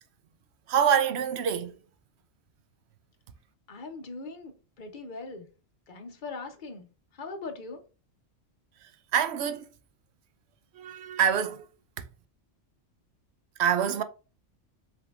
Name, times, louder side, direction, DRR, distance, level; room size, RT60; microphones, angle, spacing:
voice 1, 0.7-1.7 9.1-9.6 10.8-11.6 13.6-14.0, right 8 dB, 65° right, 0.8 m, -25 dB
voice 2, 3.7-5.5 5.9-6.9 7.2-7.8, left 3 dB, 45° left, 1.0 m, -40 dB
5.8 x 3.6 x 2.4 m
omnidirectional pair, 1.3 m